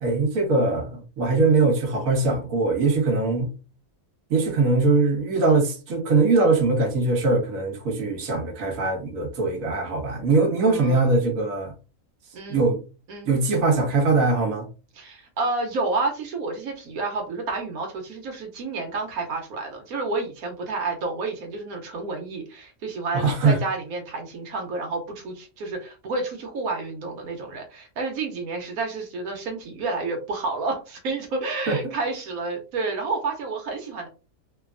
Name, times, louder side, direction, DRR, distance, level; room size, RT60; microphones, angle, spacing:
voice 1, 0.0-3.5 4.3-11.7 12.5-12.8 13.3-14.7 23.1-23.6 31.7-31.8, right 3 dB, 70° right, 1.2 m, -21 dB
voice 2, 10.6-11.1 12.3-12.6 13.1-13.3 14.9-34.1, right 3 dB, 85° right, 1.2 m, -30 dB
3.2 x 2.2 x 2.5 m
omnidirectional pair, 1.5 m